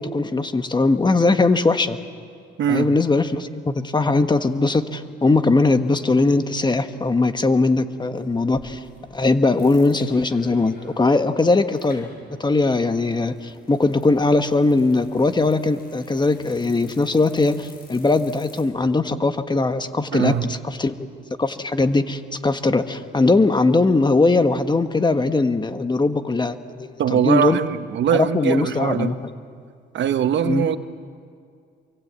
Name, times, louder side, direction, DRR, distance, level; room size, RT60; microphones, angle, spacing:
voice 1, 0.0-2.0 2.7-8.8 9.1-12.1 12.4-21.1 21.4-27.6 28.1-29.3 30.4-30.7, left 3 dB, 20° left, 9 dB, 1.4 m, -20 dB
voice 2, 2.6-2.9 20.1-20.5 27.0-29.1 29.9-30.8, right 9 dB, 65° right, 10 dB, 1.1 m, -21 dB
sound 1, 8.2-18.6, left 3 dB, 50° left, 7.8 m, -49 dB
27.0 x 23.5 x 8.4 m, 2.2 s
cardioid pair, 90°, 20 cm